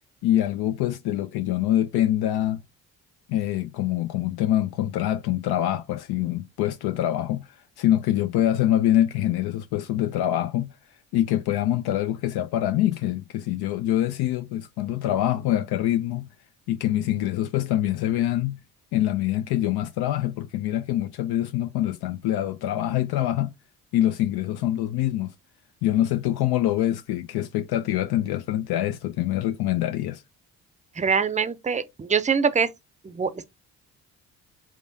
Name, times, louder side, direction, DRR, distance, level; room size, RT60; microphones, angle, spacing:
voice 1, 0.2-2.6 3.3-7.5 7.8-10.7 11.1-16.3 16.7-18.6 18.9-23.5 23.9-25.3 25.8-30.2, left 12 dB, 65° left, 0.5 m, -25 dB
voice 2, 31.0-32.7 33.0-33.5, right 6 dB, 20° right, 0.5 m, -24 dB
3.6 x 3.6 x 2.6 m
hypercardioid pair, 50°, 41 cm